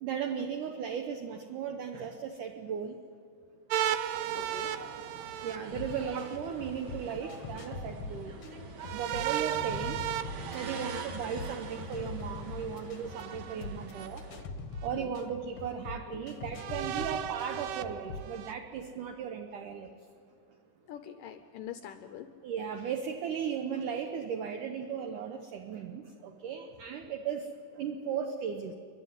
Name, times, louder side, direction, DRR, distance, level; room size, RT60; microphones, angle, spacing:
voice 1, 0.0-3.0 5.4-8.4 8.9-10.0 10.5-14.2 14.8-19.9 22.4-28.7, right 7 dB, 70° right, 5 dB, 2.1 m, -36 dB
sound 1, 3.7-6.4 8.8-11.8 13.1-14.1 14.8-14.9 16.5-18.5, right 11 dB, 85° right, 1.8 m, -35 dB
sound 2, 4.1-14.4, right 4 dB, 50° right, 2.0 m, -45 dB
voice 2, 4.4-4.8 14.9-15.2 16.1-16.2 20.9-22.3, left 10 dB, 80° left, 8 dB, 2.0 m, -44 dB
sound 3, 5.7-18.4, left 3 dB, 60° left, 1.6 m, -43 dB
29.5 x 11.5 x 9.6 m, 2.4 s
omnidirectional pair, 4.5 m